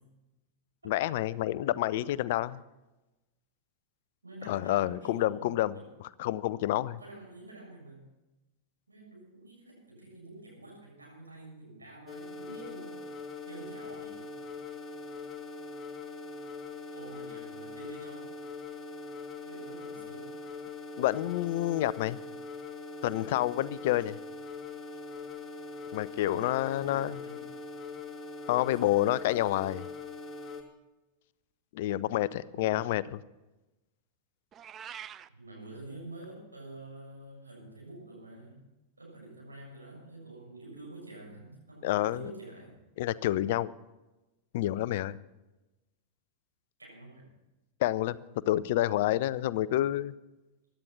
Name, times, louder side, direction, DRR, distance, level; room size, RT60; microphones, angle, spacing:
voice 1, 0.9-2.6 4.5-7.0 21.0-22.2 23.0-24.2 25.9-27.2 28.5-29.9 31.7-33.2 41.8-42.3 43.0-43.7 44.5-45.2 47.8-48.2 48.5-50.1, left 14 dB, 50° left, 19 dB, 0.5 m, -29 dB
voice 2, 4.2-5.9 7.0-8.0 8.9-13.0 13.4-14.3 16.9-18.3 19.5-20.3 26.2-27.4 28.6-28.9 32.5-32.9 35.3-38.6 39.0-42.8 46.8-47.3, right 2 dB, 80° right, -2 dB, 7.1 m, -48 dB
sound 1, 12.1-30.6, left 3 dB, 15° left, 2.7 m, -42 dB
Meow, 34.5-35.3, right 9 dB, 25° right, 0.4 m, -44 dB
16.0 x 11.5 x 6.0 m, 1.0 s
figure-of-eight pair, 90°, 0 cm